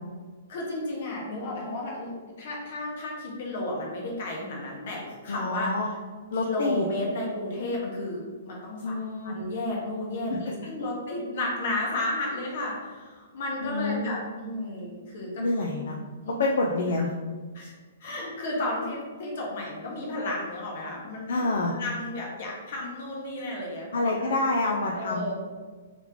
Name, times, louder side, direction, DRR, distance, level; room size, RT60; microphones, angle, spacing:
voice 1, 0.5-6.0 6.3-8.9 9.2-15.4 15.8-15.9 16.2-16.4 17.5-17.7 18.0-24.1 25.0-25.3, left 1 dB, 45° left, -2 dB, 1.1 m, -33 dB
voice 2, 5.3-5.9 6.3-6.8 8.8-9.3 10.3-10.4 13.6-14.2 15.4-16.0 16.4-17.1 21.3-21.7 23.9-25.3, left 2 dB, 60° left, -1 dB, 0.5 m, -27 dB
3.5 x 3.2 x 3.6 m, 1.4 s
hypercardioid pair, 180°, 0 cm